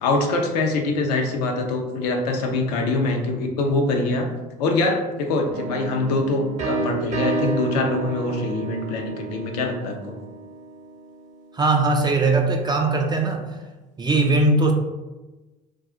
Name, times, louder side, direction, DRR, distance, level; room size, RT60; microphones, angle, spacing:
voice 1, 0.0-4.3 4.6-10.2, left 2 dB, 75° left, 3 dB, 0.6 m, -24 dB
sound 1, 5.5-11.2, right 2 dB, 35° right, 0.8 m, -30 dB
voice 2, 11.5-13.6 14.0-14.7, right 2 dB, 20° right, 2 dB, 0.4 m, -20 dB
2.4 x 2.3 x 3.6 m, 1.1 s
hypercardioid pair, 70°, 20 cm